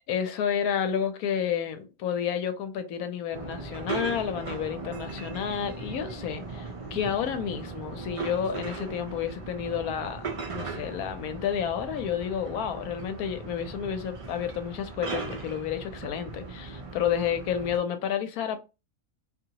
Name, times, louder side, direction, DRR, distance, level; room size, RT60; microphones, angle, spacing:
voice 1, 0.1-18.6, left 8 dB, 90° left, 1.1 m, -30 dB
sound 1, 3.3-17.8, right 3 dB, 55° right, 0.3 m, -38 dB
2.7 x 2.6 x 2.8 m
omnidirectional pair, 1.5 m